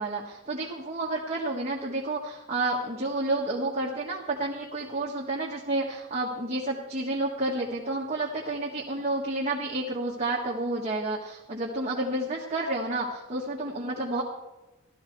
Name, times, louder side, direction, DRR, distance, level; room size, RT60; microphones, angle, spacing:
voice 1, 0.0-14.2, right 2 dB, 30° right, -3 dB, 1.5 m, -30 dB
15.0 x 13.0 x 4.6 m, 1.1 s
head